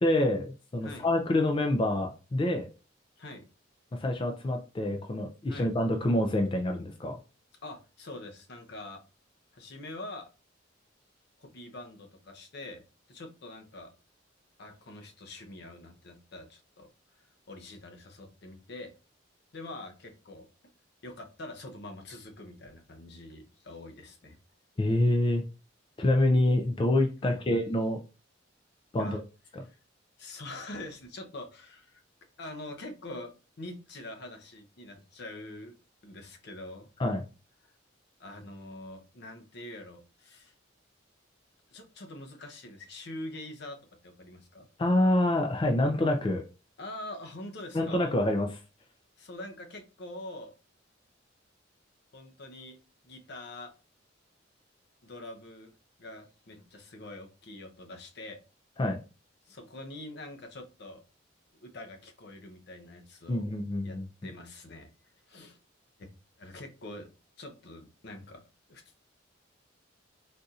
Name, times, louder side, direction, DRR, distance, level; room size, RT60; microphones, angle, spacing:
voice 1, 0.0-2.7 3.9-7.2 24.8-25.4 26.0-28.0 28.9-29.2 29.5-29.6 37.0-37.2 44.8-46.4 47.7-48.6 58.8-59.0 63.3-64.1, left 1 dB, 25° left, 3 dB, 0.3 m, -26 dB
voice 2, 7.6-9.0 9.5-10.3 11.4-12.8 13.1-13.9 14.6-16.9 17.5-18.9 19.5-20.5 21.0-24.4 27.2-27.4 29.0-29.2 29.6-29.8 30.2-32.0 32.4-35.7 36.0-36.9 38.2-40.5 41.7-43.8 44.0-44.7 46.8-48.0 49.2-50.5 52.1-52.8 53.0-53.7 55.0-55.7 56.0-58.4 59.5-61.0 61.6-63.5 63.8-64.9 65.3-65.6 66.0-66.1 66.4-67.1 67.4-68.4 68.7-68.8, left 2 dB, 60° left, 4 dB, 0.7 m, -44 dB
4.0 x 2.6 x 2.4 m, 0.32 s
head